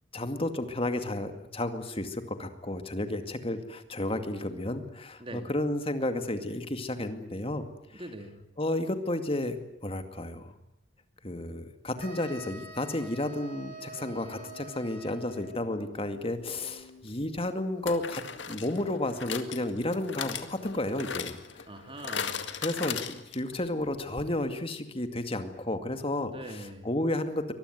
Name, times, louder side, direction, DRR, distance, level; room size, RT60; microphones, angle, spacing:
voice 1, 0.1-7.7 7.9-8.0 8.6-10.5 11.2-21.7 22.6-27.5, left 1 dB, 30° left, 8 dB, 2.2 m, -32 dB
voice 2, 5.2-5.5 7.9-8.4 21.7-22.5 26.3-26.9, right 1 dB, 25° right, 6 dB, 2.6 m, -42 dB
sound 1, 12.0-15.7, right 1 dB, 45° right, 5.7 m, -46 dB
sound 2, 13.8-17.0, left 3 dB, ahead, 6.7 m, -52 dB
sound 3, 16.6-16.7 17.9-23.6 23.9-24.0 24.2-24.3, left 7 dB, 65° left, 2.0 m, -38 dB
23.5 x 20.5 x 9.4 m, 0.83 s
head